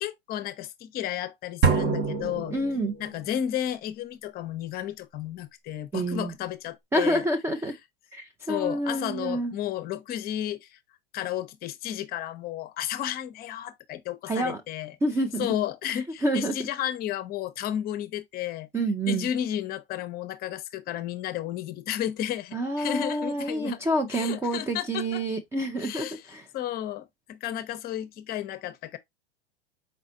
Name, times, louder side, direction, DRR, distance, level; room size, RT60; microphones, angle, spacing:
voice 1, 0.0-2.6 3.0-7.3 8.5-10.8 11.1-15.0 15.4-18.7 19.1-23.8 24.1-25.2 25.8-26.2 26.5-29.0, left 11 dB, 30° left, 0.6 m, -32 dB
sound 1, 1.6-3.3, right 4 dB, 40° right, 0.9 m, -26 dB
voice 2, 2.5-2.9 5.9-6.3 6.9-7.8 8.1-9.5 14.3-14.6 15.0-15.5 15.9-16.6 18.7-19.3 22.5-26.5, right 1 dB, 10° right, 0.4 m, -28 dB
4.3 x 4.0 x 2.6 m
hypercardioid pair, 105°, 30 cm